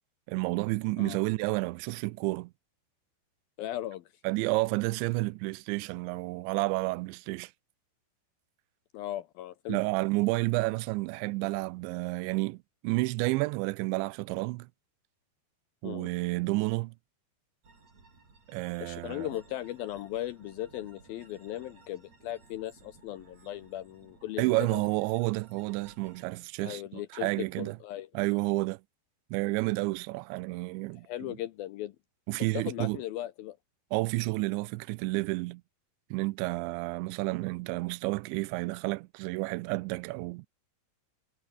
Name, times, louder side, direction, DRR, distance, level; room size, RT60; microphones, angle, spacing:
voice 1, 0.3-2.5 4.2-7.5 9.7-14.7 15.8-16.9 18.5-19.3 24.4-27.8 28.1-28.8 29.3-31.1 32.3-33.0 33.9-35.6 36.1-40.5, right 23 dB, 85° right, 2.9 m, -30 dB
voice 2, 3.6-4.0 8.9-9.8 15.8-16.1 18.8-24.8 26.6-28.1 31.0-32.0 32.5-33.6, left 13 dB, 75° left, 2.3 m, -37 dB
sound 1, 17.6-26.2, right 4 dB, 35° right, 6.9 m, -58 dB
omnidirectional pair, 5.1 m